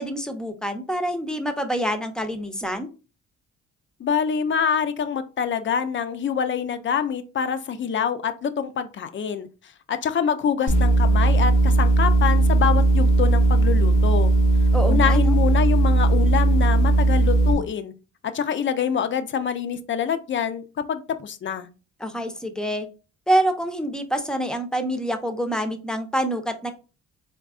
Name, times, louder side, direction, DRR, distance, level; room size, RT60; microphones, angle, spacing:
voice 1, 0.0-2.9 14.7-15.3 22.0-22.9 23.3-26.7, right 1 dB, ahead, 6 dB, 0.7 m, -26 dB
voice 2, 4.0-9.5 9.9-14.3 14.9-17.9 18.2-21.7, left 7 dB, 40° left, 10 dB, 0.5 m, -25 dB
sound 1, 10.7-17.5, right 2 dB, 90° left, 1.3 m, -18 dB
3.9 x 3.6 x 2.4 m, 0.33 s
cardioid pair, 90°, 30 cm